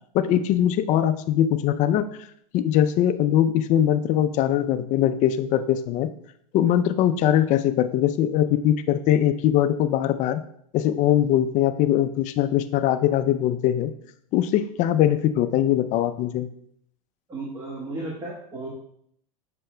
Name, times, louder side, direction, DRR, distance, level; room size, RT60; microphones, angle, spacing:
voice 1, 0.1-2.1 2.5-6.1 6.5-10.4 10.7-13.9 14.3-16.5, left 11 dB, 40° left, 10 dB, 0.5 m, -21 dB
voice 2, 17.3-18.7, right 2 dB, 20° right, -3 dB, 1.6 m, -34 dB
7.5 x 5.9 x 2.2 m, 0.69 s
hypercardioid pair, 110°, 19 cm